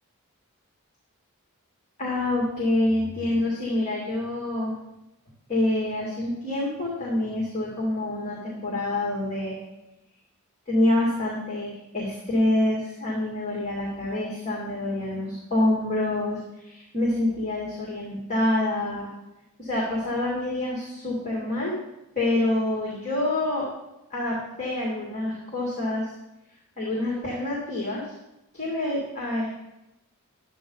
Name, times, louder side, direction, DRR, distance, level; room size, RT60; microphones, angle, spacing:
voice 1, 2.0-4.8 5.5-9.6 10.7-19.1 19.6-21.8 22.2-23.7 24.1-26.1 26.8-28.1 28.5-29.5, left 1 dB, 35° left, -4 dB, 2.3 m, -26 dB
12.0 x 9.1 x 3.9 m, 0.94 s
head